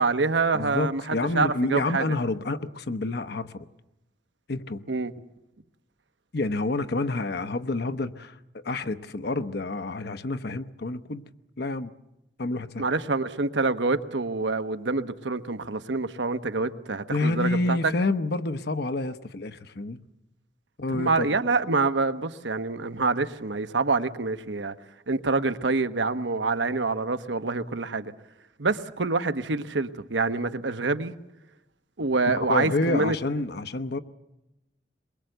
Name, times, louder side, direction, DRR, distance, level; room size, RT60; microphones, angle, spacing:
voice 1, 0.0-2.0 4.9-5.1 12.8-17.9 20.9-24.7 25.1-28.1 28.6-31.1 32.0-33.2, right 3 dB, 90° right, 1.1 m, -26 dB
voice 2, 0.5-3.7 4.5-4.8 6.3-11.2 11.6-11.9 12.4-12.8 17.1-20.0 20.8-21.3 32.4-34.0, left 2 dB, 65° left, 0.9 m, -28 dB
23.0 x 22.0 x 8.0 m
head